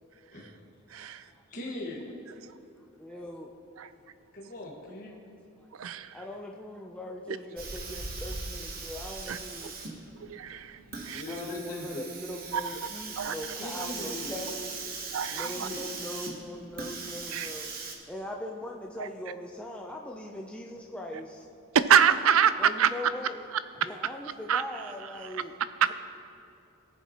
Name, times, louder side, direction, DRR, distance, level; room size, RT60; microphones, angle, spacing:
voice 1, 0.3-0.6 0.9-1.1 1.5-2.1 4.3-5.1 10.7-12.0 13.6-14.4 15.4-15.9, left 2 dB, 40° left, -5 dB, 1.6 m, -40 dB
voice 2, 0.9-1.2 3.8-3.9 5.8-6.1 9.3-9.4 10.2-10.8 11.1-11.2 12.5-12.6 13.2-13.3 15.1-15.7 17.3-17.5 19.0-19.1 21.7-22.9 24.5-24.6, right 8 dB, 85° right, 13 dB, 0.4 m, -25 dB
voice 3, 2.8-3.5 5.6-5.7 6.1-9.7 10.9-14.8 15.3-17.7 18.1-21.5 22.6-23.5 23.7-25.5, left 1 dB, 5° left, 0 dB, 0.5 m, -40 dB
Hiss, 7.6-17.9, right 4 dB, 45° right, 1.1 m, -39 dB
18.0 x 7.2 x 3.0 m, 2.7 s
head